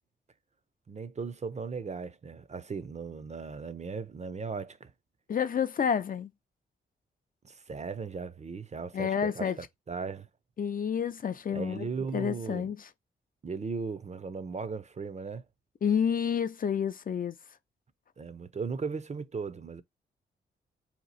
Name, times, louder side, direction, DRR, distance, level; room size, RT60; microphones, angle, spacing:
voice 1, 0.9-4.9 7.4-10.3 11.5-12.7 13.4-15.4 18.2-19.8, right 5 dB, 35° right, 0.6 m, -37 dB
voice 2, 5.3-6.3 8.9-9.6 10.6-12.9 15.8-17.4, left 7 dB, 45° left, 0.4 m, -29 dB
2.9 x 2.3 x 4.0 m
supercardioid pair, 50°, 20 cm